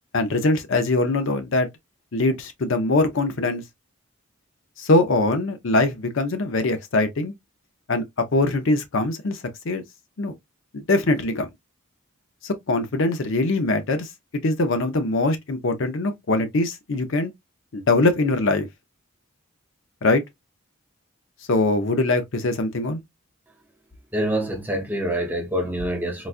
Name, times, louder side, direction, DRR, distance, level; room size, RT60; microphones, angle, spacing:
voice 1, 0.1-1.7 2.1-3.6 4.8-7.3 7.9-8.0 8.3-9.8 10.2-10.3 10.7-11.5 12.4-14.1 14.4-17.3 17.7-18.7 20.0-20.2 21.5-23.0, left 2 dB, 60° left, 0.6 m, -22 dB
voice 2, 24.1-26.3, right 1 dB, 10° right, 0.7 m, -26 dB
4.0 x 2.3 x 2.4 m
head